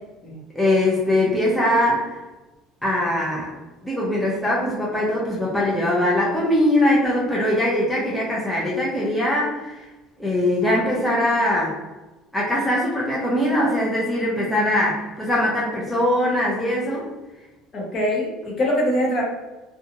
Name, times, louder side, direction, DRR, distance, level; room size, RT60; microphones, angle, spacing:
voice 1, 0.5-2.2 2.8-3.5 3.8-9.8 10.2-11.8 12.3-17.1, left 1 dB, 5° left, -6 dB, 0.6 m, -21 dB
voice 2, 17.7-19.2, equal, 40° left, -2 dB, 0.9 m, -23 dB
2.7 x 2.3 x 2.7 m, 1.1 s
cardioid pair, 130°, 0 cm